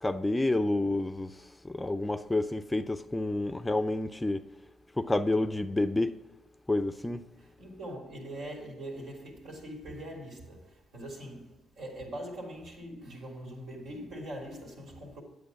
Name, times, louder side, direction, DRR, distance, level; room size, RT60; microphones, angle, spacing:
voice 1, 0.0-4.4 5.0-6.2 6.7-7.2, left 2 dB, 10° left, 0.5 m, -29 dB
voice 2, 7.4-15.2, right 1 dB, 75° right, 3.1 m, -42 dB
9.5 x 8.1 x 5.8 m
cardioid pair, 90°, 0 cm